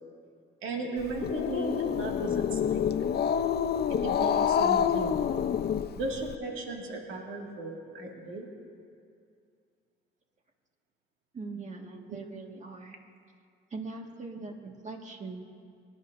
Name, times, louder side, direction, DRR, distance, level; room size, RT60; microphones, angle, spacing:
voice 1, 0.6-3.1 4.0-5.2 5.9-8.5 12.1-12.2, right 2 dB, 90° right, -1 dB, 2.1 m, -36 dB
Growling, 1.0-6.3, left 8 dB, 55° left, 0.6 m, -27 dB
voice 2, 11.3-13.0 13.7-15.4, right 3 dB, 35° right, 2 dB, 1.8 m, -41 dB
25.5 x 10.5 x 2.6 m, 2.3 s
cardioid pair, 90°, 20 cm